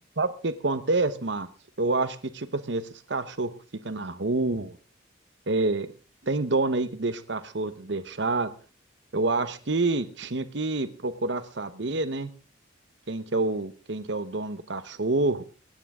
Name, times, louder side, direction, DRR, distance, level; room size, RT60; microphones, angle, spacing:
voice 1, 0.2-1.5 1.8-3.5 3.8-4.7 5.5-5.9 6.2-8.5 9.1-12.3 13.1-15.6, right 2 dB, 65° right, 12 dB, 1.0 m, -27 dB
23.5 x 9.6 x 3.7 m, 0.37 s
head